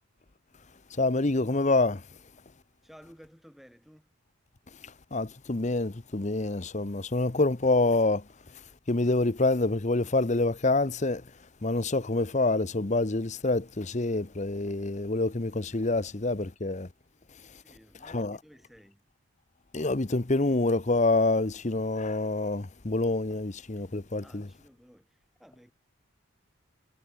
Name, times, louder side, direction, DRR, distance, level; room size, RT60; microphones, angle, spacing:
voice 1, 1.0-2.0 5.1-8.2 8.9-11.2 11.6-16.9 18.1-18.4 19.7-24.4, left 2 dB, 35° left, 0.9 m, -26 dB
voice 2, 2.8-4.2 15.9-16.1 17.6-19.0 23.8-25.7, equal, ahead, 6.2 m, -56 dB
head